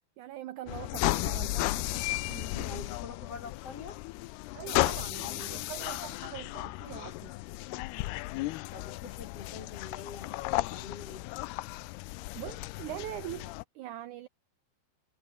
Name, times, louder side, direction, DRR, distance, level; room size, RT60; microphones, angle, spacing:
voice 1, 0.2-2.9 4.5-7.3 12.3-14.3, right 14 dB, 80° right, 1.7 m, -43 dB
sound 1, 0.7-13.6, left 20 dB, 85° left, 2.7 m, -34 dB
voice 2, 2.6-4.0 8.7-11.2, left 5 dB, 40° left, 3.3 m, -45 dB
omnidirectional pair, 4.6 m